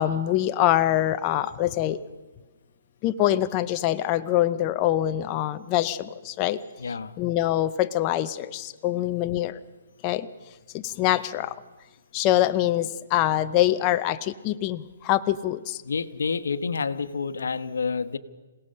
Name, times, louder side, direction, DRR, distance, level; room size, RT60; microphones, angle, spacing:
voice 1, 0.0-2.0 3.0-6.6 7.2-9.6 10.0-10.3 10.7-11.5 12.1-15.8, left 13 dB, 25° left, 11 dB, 0.6 m, -24 dB
voice 2, 6.8-7.1 8.9-9.1 15.8-18.2, left 5 dB, 85° left, 13 dB, 1.1 m, -29 dB
27.0 x 17.5 x 6.5 m, 1.3 s
hypercardioid pair, 160°, 0 cm